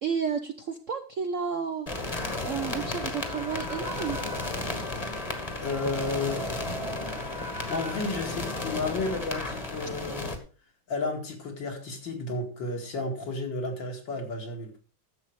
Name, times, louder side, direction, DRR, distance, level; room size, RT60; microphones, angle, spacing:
voice 1, 0.0-2.1 2.4-4.2, right 6 dB, 55° right, 7 dB, 0.8 m, -32 dB
sound 1, 1.9-10.4, left 2 dB, 20° left, 1.5 m, -33 dB
voice 2, 5.6-6.4 7.7-10.3 10.9-14.8, left 3 dB, 65° left, 2 dB, 2.9 m, -32 dB
11.0 x 7.7 x 4.8 m, 0.37 s
omnidirectional pair, 2.2 m